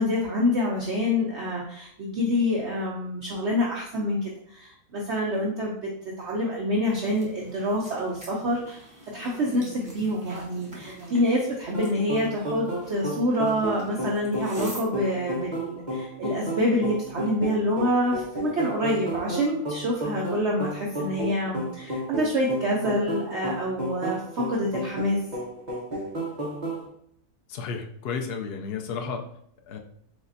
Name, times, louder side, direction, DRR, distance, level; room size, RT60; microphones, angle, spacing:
voice 1, 0.0-5.7 6.2-8.8 9.1-25.2, left 1 dB, 55° right, -2 dB, 0.8 m, -26 dB
sound 1, 6.9-14.9, right 1 dB, 15° right, 0.8 m, -45 dB
sound 2, 11.7-26.8, equal, 30° right, 1.2 m, -32 dB
voice 2, 27.5-29.2 29.7-29.8, left 5 dB, 85° left, 3 dB, 0.5 m, -32 dB
4.9 x 4.1 x 2.6 m, 0.69 s
omnidirectional pair, 1.7 m